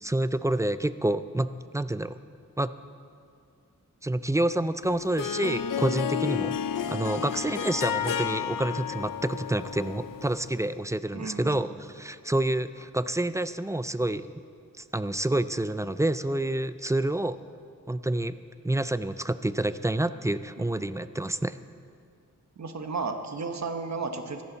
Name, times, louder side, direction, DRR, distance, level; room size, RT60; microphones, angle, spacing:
voice 1, 0.0-2.2 2.6-2.7 4.0-6.6 6.9-14.3 14.8-17.4 17.9-18.4 18.6-21.5, right 1 dB, 10° right, 13 dB, 0.4 m, -28 dB
Harp, 4.8-10.6, left 8 dB, 85° left, 0.5 m, -32 dB
voice 2, 11.1-11.6 20.6-20.9 22.6-24.4, right 4 dB, 60° right, 6 dB, 1.1 m, -34 dB
15.5 x 14.0 x 4.0 m, 2.2 s
wide cardioid pair, 70°, 32 cm